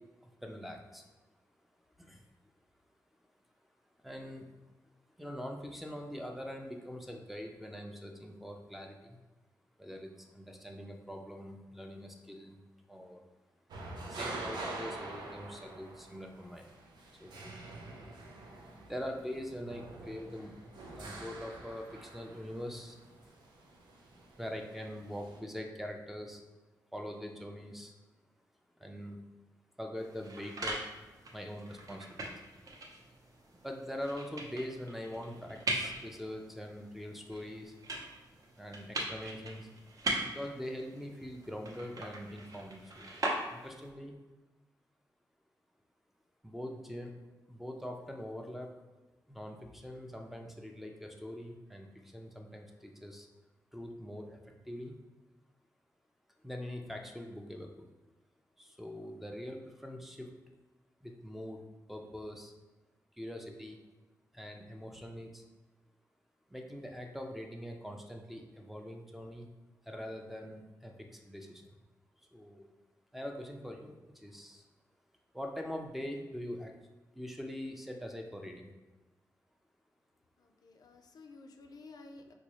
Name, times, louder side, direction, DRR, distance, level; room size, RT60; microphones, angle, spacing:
voice 1, 0.2-1.1 2.0-2.2 4.0-4.4 5.2-9.2 9.8-12.6 12.9-13.2 14.1-16.8 17.1-17.6 18.8-20.5 20.9-23.0 24.4-26.4 26.9-27.9 28.8-29.2 29.8-30.9 31.3-32.4 33.6-37.8 38.6-39.7 40.2-44.2 46.4-47.1 47.5-48.8 49.3-53.3 53.7-55.0 56.4-57.9 58.6-60.3 61.0-62.5 63.2-63.8 64.3-65.4 66.5-69.5 69.8-71.7 72.3-72.7 73.1-74.7 75.3-76.7 77.1-78.6, equal, 5° right, 1 dB, 0.4 m, -43 dB
sound 1, 13.7-25.4, right 2 dB, 85° right, 0.5 m, -46 dB
sound 2, 30.0-43.9, right 1 dB, 55° right, 0.8 m, -41 dB
voice 2, 80.4-82.3, left 3 dB, 65° left, 5 dB, 0.4 m, -53 dB
4.0 x 2.3 x 3.0 m, 1.2 s
cardioid pair, 90°, 7 cm